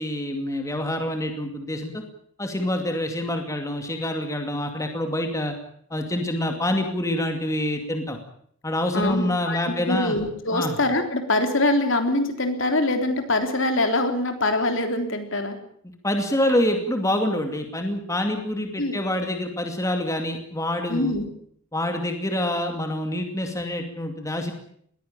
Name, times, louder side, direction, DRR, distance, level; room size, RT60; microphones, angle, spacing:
voice 1, 0.0-2.0 2.4-5.6 5.9-8.2 8.6-10.2 10.5-10.8 16.0-21.2 21.7-24.5, left 1 dB, 15° left, 4 dB, 2.4 m, -26 dB
voice 2, 8.9-15.6 18.8-18.9 20.9-21.3, left 2 dB, 60° left, 6 dB, 3.5 m, -24 dB
21.0 x 16.0 x 8.9 m, 0.64 s
head